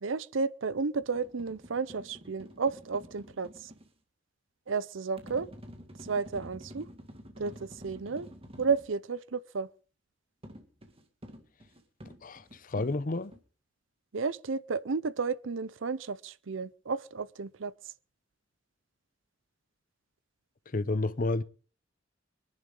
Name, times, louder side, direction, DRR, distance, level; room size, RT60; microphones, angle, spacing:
voice 1, 0.0-3.7 4.7-5.5 6.1-6.9 7.4-8.3 8.6-9.7 14.1-17.7, right 4 dB, 90° right, 0.6 m, -32 dB
sound 1, 1.0-3.9 5.2-8.9 10.4-13.4, equal, 30° right, 2.2 m, -49 dB
voice 2, 12.2-13.3 20.7-21.4, left 2 dB, 45° left, 0.8 m, -30 dB
23.5 x 11.0 x 3.9 m
head